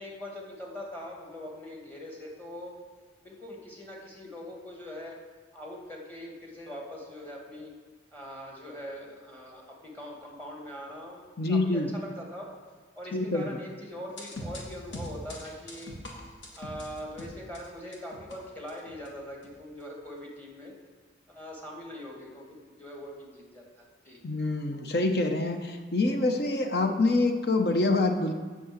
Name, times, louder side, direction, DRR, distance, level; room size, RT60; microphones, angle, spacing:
voice 1, 0.0-2.8 3.2-5.2 5.5-7.7 8.1-12.5 13.0-16.0 16.6-20.7 21.3-24.2, left 1 dB, 10° left, -2 dB, 1.9 m, -42 dB
voice 2, 11.4-11.9 13.1-13.5 24.2-28.3, left 2 dB, 60° left, 5 dB, 0.9 m, -26 dB
sound 1, 14.1-18.3 18.7-19.1 19.4-19.6, left 1 dB, 90° left, 1.9 m, -42 dB
8.5 x 6.1 x 7.4 m, 1.4 s
head